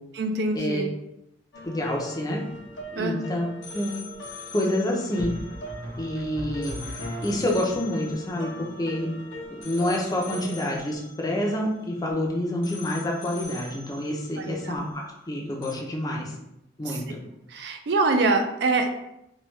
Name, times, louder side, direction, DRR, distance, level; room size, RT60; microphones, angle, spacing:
voice 1, 0.1-0.9 3.0-3.2 14.4-14.8 16.9-17.0 17.5-18.9, right 3 dB, 60° right, 6 dB, 0.3 m, -25 dB
sound 1, 1.5-12.2 12.6-15.3 15.6-15.7, left 1 dB, 70° left, 0.5 m, -40 dB
voice 2, 1.6-2.4 2.9-3.4 3.7-3.9 4.5-5.3 6.0-6.8 7.2-9.1 9.5-16.3 16.8-17.2, left 1 dB, 20° left, -1 dB, 0.4 m, -28 dB
sound 2, 2.5-3.0 5.2-7.8, equal, 35° right, 1.1 m, -38 dB
3.1 x 2.2 x 3.1 m, 0.84 s
head